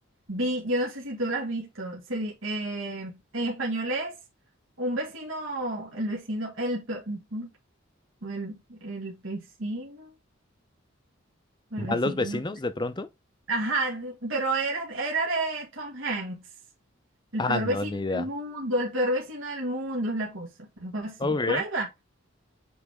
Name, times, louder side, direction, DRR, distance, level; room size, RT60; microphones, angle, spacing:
voice 1, 0.3-4.2 4.8-7.5 8.2-10.1 11.7-12.4 13.5-16.4 17.3-21.9, right 1 dB, 75° right, 1.8 m, -31 dB
voice 2, 11.8-13.1 17.4-18.3 21.2-21.6, left 2 dB, 20° left, 0.6 m, -28 dB
8.2 x 3.4 x 3.6 m
head